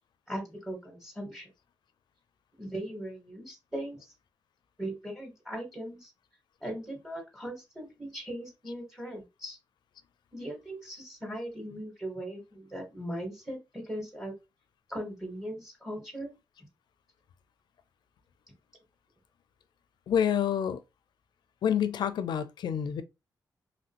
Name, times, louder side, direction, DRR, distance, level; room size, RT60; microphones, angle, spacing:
voice 1, 0.3-1.5 2.6-4.1 4.8-6.1 6.6-9.6 10.3-14.3 14.9-16.3, right 1 dB, 5° right, 1.3 m, -39 dB
voice 2, 20.1-20.8 21.6-23.0, left 8 dB, 75° left, 0.4 m, -28 dB
3.0 x 2.5 x 2.8 m
cardioid pair, 70°, 8 cm